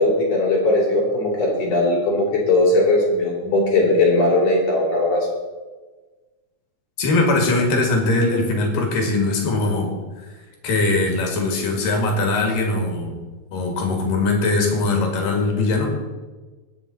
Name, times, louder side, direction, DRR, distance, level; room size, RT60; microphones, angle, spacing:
voice 1, 0.0-5.3, left 2 dB, 50° left, -4 dB, 4.7 m, -19 dB
voice 2, 7.0-9.9 10.6-13.2 13.5-15.9, left 2 dB, 80° left, 1 dB, 3.8 m, -21 dB
21.0 x 7.3 x 4.2 m, 1.3 s
omnidirectional pair, 3.9 m